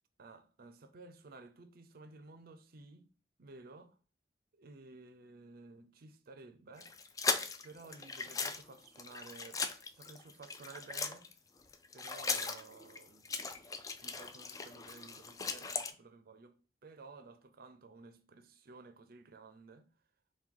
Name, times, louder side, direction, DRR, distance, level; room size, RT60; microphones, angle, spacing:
voice 1, 0.2-3.1 3.4-4.0 4.5-6.9 7.6-9.6 10.0-11.3 11.9-13.4 14.0-16.5 16.8-19.9, right 3 dB, 55° right, 0.5 m, -54 dB
sound 1, 6.8-11.3 11.6-15.9, left 4 dB, 20° left, 0.3 m, -38 dB
4.6 x 2.2 x 3.6 m
head